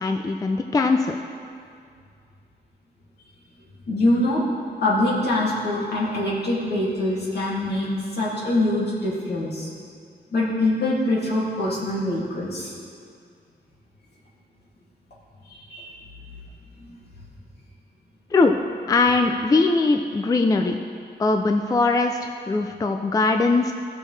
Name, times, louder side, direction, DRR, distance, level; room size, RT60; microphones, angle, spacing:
voice 1, 0.0-1.2 18.3-18.6 18.9-20.8 21.2-23.7, left 3 dB, 20° left, 5 dB, 0.3 m, -21 dB
voice 2, 3.9-4.4 4.8-9.7 10.3-12.7 15.5-15.9 16.9-17.0, left 1 dB, 70° left, -6 dB, 2.4 m, -24 dB
16.5 x 6.3 x 3.3 m, 2.3 s
wide cardioid pair, 170°, 18 cm